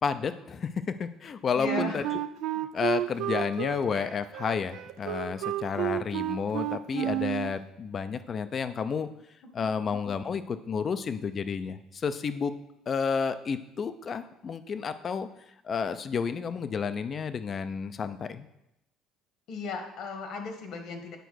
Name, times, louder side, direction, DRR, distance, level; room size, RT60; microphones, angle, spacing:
voice 1, 0.0-2.0 2.7-9.1 9.5-12.5 12.9-15.3 15.6-18.5, left 6 dB, 35° left, 12 dB, 0.5 m, -31 dB
voice 2, 1.5-2.0 9.4-9.7 19.5-21.2, left 4 dB, 60° left, 5 dB, 1.5 m, -36 dB
Wind instrument woodwind instrument, 1.6-7.5, right 13 dB, 70° right, 0.4 m, -31 dB
9.2 x 4.6 x 6.3 m, 0.86 s
cardioid pair, 130°, 0 cm